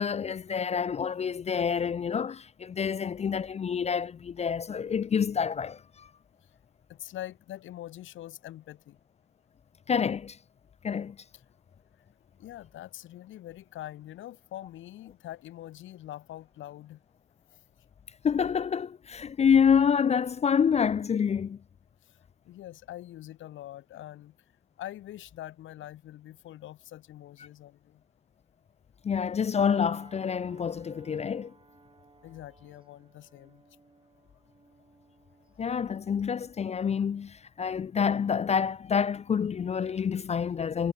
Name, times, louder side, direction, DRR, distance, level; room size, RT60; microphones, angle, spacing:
voice 1, 0.0-6.1 9.9-10.4 10.8-11.2 18.2-21.6 29.0-31.5 35.6-40.9, left 7 dB, 35° left, 0.4 m, -27 dB
voice 2, 6.9-9.0 11.3-11.4 12.4-17.0 17.5-17.6 22.0-22.2 22.4-24.3 24.8-28.0 32.2-33.6, left 13 dB, 75° left, 1.3 m, -44 dB
sound 1, 29.6-38.4 38.9-39.1, right 3 dB, 25° right, 5.2 m, -57 dB
cardioid pair, 90°, 20 cm